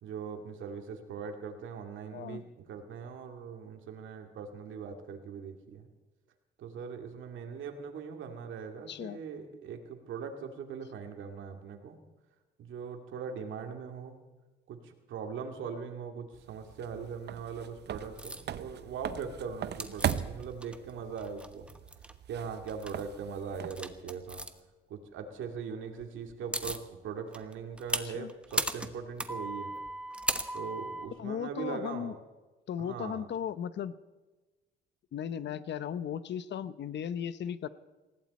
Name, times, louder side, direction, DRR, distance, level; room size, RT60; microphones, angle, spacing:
voice 1, 0.0-5.9 6.6-12.0 12.6-14.2 14.7-21.7 22.3-24.4 24.9-29.7 30.5-32.1 32.8-33.3, right 6 dB, 80° right, 5 dB, 2.4 m, -40 dB
voice 2, 2.1-2.5 8.9-9.2 28.0-28.3 31.2-32.1 32.7-33.9 35.1-37.7, left 9 dB, 60° left, 15 dB, 0.9 m, -36 dB
sound 1, 16.3-24.0, right 10 dB, 60° right, 0.8 m, -39 dB
sound 2, 18.2-18.4 19.8-20.9 21.2-22.1 22.7-23.0 23.7-24.5 26.0-26.1 26.3-26.9 27.3-31.1, right 1 dB, 5° right, 1.2 m, -36 dB
19.5 x 16.0 x 4.3 m, 1.2 s
cardioid pair, 90°, 20 cm